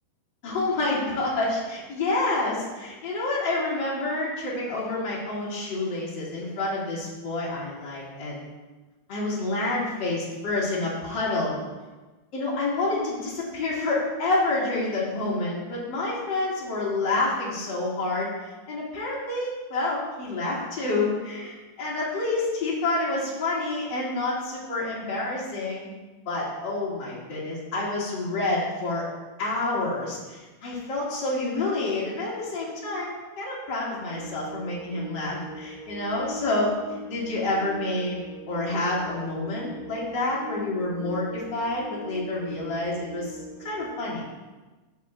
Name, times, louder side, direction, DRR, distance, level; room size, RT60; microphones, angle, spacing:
voice 1, 0.4-8.4 9.1-11.6 12.3-18.3 18.7-25.9 26.3-29.1 29.4-44.2, left 2 dB, 40° left, -7 dB, 1.9 m, -28 dB
sound 1, 34.1-44.0, equal, 90° right, 2.7 m, -40 dB
11.5 x 5.8 x 2.5 m, 1.2 s
omnidirectional pair, 4.6 m